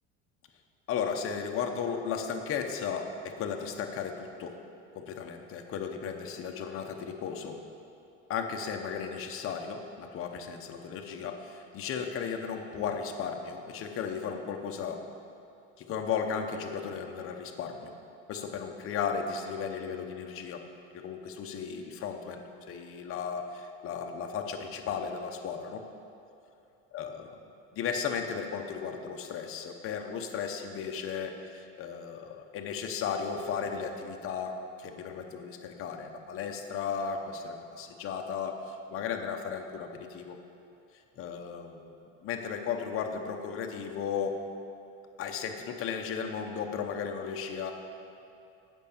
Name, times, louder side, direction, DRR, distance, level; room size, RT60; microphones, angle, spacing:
voice 1, 0.9-4.6 4.9-7.6 8.3-15.0 15.8-17.9 18.3-20.6 20.9-25.8 26.9-27.3 27.7-40.4 41.2-44.4 45.2-47.7, left 6 dB, 45° left, 3 dB, 0.8 m, -35 dB
8.1 x 5.4 x 7.0 m, 2.7 s
cardioid pair, 125°, 31 cm